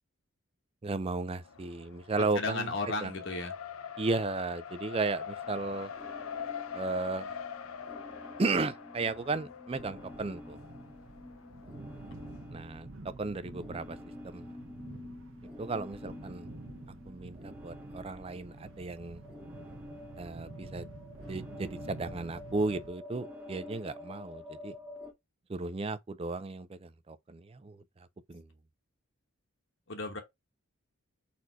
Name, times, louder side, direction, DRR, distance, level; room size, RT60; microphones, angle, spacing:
voice 1, 0.8-2.7 3.0-3.1 4.0-5.9 6.7-7.4 8.4-10.6 12.5-12.9 13.2-14.0 14.2-14.5 15.6-16.5 17.1-19.2 20.2-20.8 21.3-24.7 25.5-27.8 28.3-28.5, right 3 dB, 25° right, 0.4 m, -34 dB
Race car auto racing, 1.4-12.4, left 7 dB, 75° left, 0.6 m, -44 dB
voice 2, 2.3-3.5 29.9-30.2, left 3 dB, 55° left, 1.1 m, -34 dB
sound 1, 5.4-25.1, left 1 dB, 5° right, 0.9 m, -49 dB
sound 2, 9.7-22.9, right 2 dB, 65° right, 1.0 m, -48 dB
4.2 x 2.7 x 4.5 m
head